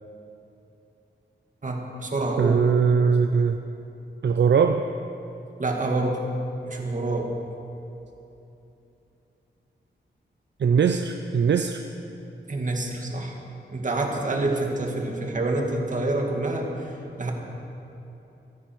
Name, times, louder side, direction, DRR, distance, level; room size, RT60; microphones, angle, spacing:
voice 1, 1.6-2.7 5.6-6.2 6.6-7.3 12.5-13.4 13.7-17.3, right 2 dB, 40° right, 1 dB, 2.1 m, -27 dB
voice 2, 2.4-3.6 4.2-4.8 10.6-11.8, right 6 dB, 70° right, 7 dB, 0.6 m, -20 dB
24.0 x 10.5 x 4.6 m, 2.9 s
wide cardioid pair, 100°, 19 cm